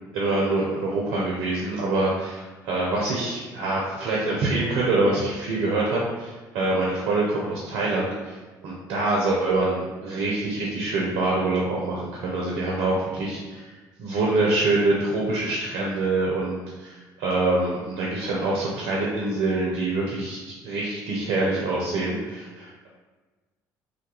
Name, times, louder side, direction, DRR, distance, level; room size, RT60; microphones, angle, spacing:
voice 1, 0.1-13.7 14.0-20.4 20.6-22.9, right 2 dB, 65° right, -3 dB, 0.5 m, -25 dB
2.2 x 2.2 x 2.9 m, 1.3 s
hypercardioid pair, 60°, 10 cm